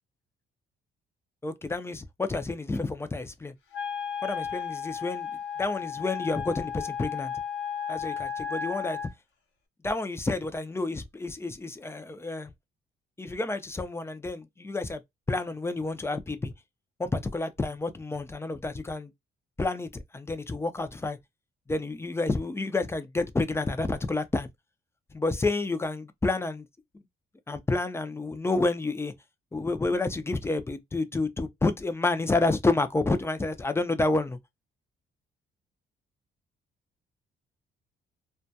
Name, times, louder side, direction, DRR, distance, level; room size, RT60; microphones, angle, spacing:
voice 1, 1.4-3.5 4.2-5.3 5.6-7.3 7.9-9.0 9.8-12.5 13.2-15.0 15.3-16.5 17.0-19.1 19.6-21.2 21.7-24.5 25.1-26.6 27.5-29.1 29.5-34.4, left 3 dB, 15° left, 0.4 m, -29 dB
Wind instrument woodwind instrument, 3.7-9.1, left 7 dB, 70° left, 0.8 m, -34 dB
2.2 x 2.1 x 2.7 m
cardioid pair, 90°, 20 cm